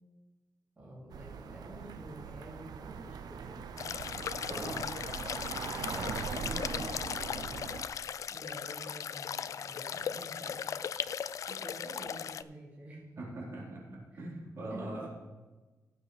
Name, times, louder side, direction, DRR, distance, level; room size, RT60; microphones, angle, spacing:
voice 1, 0.8-4.2 5.5-7.7 8.3-10.6 11.3-13.1 14.1-14.4 14.7-15.1, right 1 dB, 20° right, -8 dB, 2.6 m, -49 dB
sound 1, 1.1-7.9, right 6 dB, 75° right, 0.6 m, -41 dB
sound 2, 3.8-12.4, left 8 dB, 55° left, 0.3 m, -38 dB
voice 2, 4.5-4.8 13.2-15.1, right 1 dB, 45° right, -5 dB, 4.1 m, -41 dB
18.0 x 7.4 x 3.3 m, 1.2 s
wide cardioid pair, 180°, 7 cm